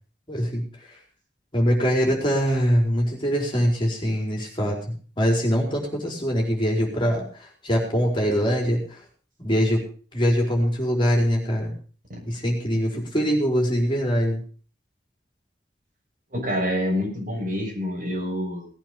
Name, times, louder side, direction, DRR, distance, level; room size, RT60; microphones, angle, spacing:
voice 1, 0.3-0.6 1.5-7.2 7.6-9.0 9.4-9.8 10.1-11.8 12.3-14.4, equal, 30° left, -1 dB, 4.7 m, -23 dB
voice 2, 16.3-18.7, equal, 50° right, -1 dB, 7.0 m, -27 dB
18.5 x 9.1 x 5.3 m, 0.41 s
head